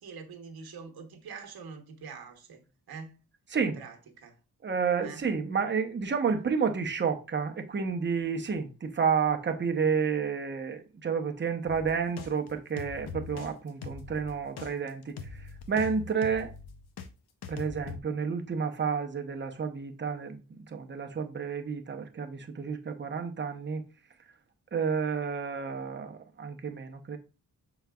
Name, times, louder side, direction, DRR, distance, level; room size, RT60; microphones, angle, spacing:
voice 1, 0.0-2.6 2.9-3.2 3.7-4.4 5.0-5.2, right 5 dB, 75° right, 1.0 m, -45 dB
voice 2, 3.5-3.8 4.6-16.5 17.5-23.8 24.7-27.2, right 6 dB, 30° right, 0.7 m, -30 dB
sound 1, 11.7-17.1 17.4-18.0, left 5 dB, 85° left, 0.7 m, -42 dB
5.9 x 3.9 x 2.3 m
cardioid pair, 100°, 37 cm